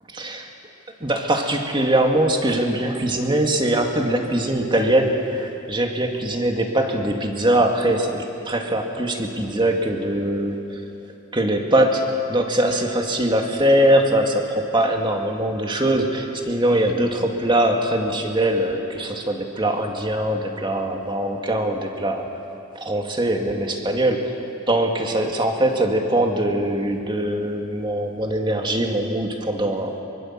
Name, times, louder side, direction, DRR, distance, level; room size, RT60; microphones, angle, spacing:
voice 1, 0.1-0.5 1.0-10.8 11.3-22.3 22.8-30.0, right 1 dB, 25° right, 3 dB, 2.2 m, -22 dB
24.5 x 24.0 x 7.5 m, 2.8 s
head